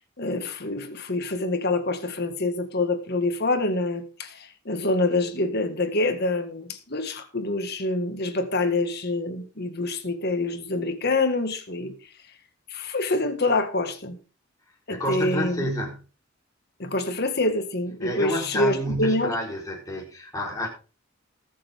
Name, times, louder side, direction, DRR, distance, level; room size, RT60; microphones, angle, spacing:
voice 1, 0.2-11.9 12.7-14.2 14.9-15.7 16.8-19.4, left 2 dB, 50° left, 7 dB, 1.9 m, -26 dB
voice 2, 14.9-16.0 18.0-20.7, equal, 15° left, -1 dB, 4.3 m, -29 dB
20.0 x 7.1 x 3.7 m, 0.35 s
head